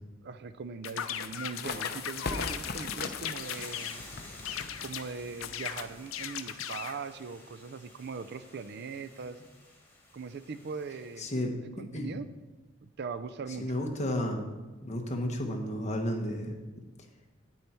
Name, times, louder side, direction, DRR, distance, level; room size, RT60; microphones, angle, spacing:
voice 1, 0.2-4.0 4.8-9.4 10.1-11.3 11.8-12.3 12.8-13.7, right 5 dB, 55° right, 13 dB, 0.4 m, -40 dB
sound 1, 0.8-4.0 4.4-5.1 5.4-7.0, left 9 dB, 90° left, 0.5 m, -38 dB
sound 2, 1.0-6.3, left 4 dB, 50° left, 0.8 m, -40 dB
Hiss / Boiling, 3.3-11.2, left 2 dB, 10° left, 2.1 m, -52 dB
voice 2, 11.2-11.5 11.8-12.1 13.6-14.4 14.8-16.6, left 1 dB, 35° left, 2 dB, 1.3 m, -32 dB
9.4 x 8.7 x 4.4 m, 1.2 s
head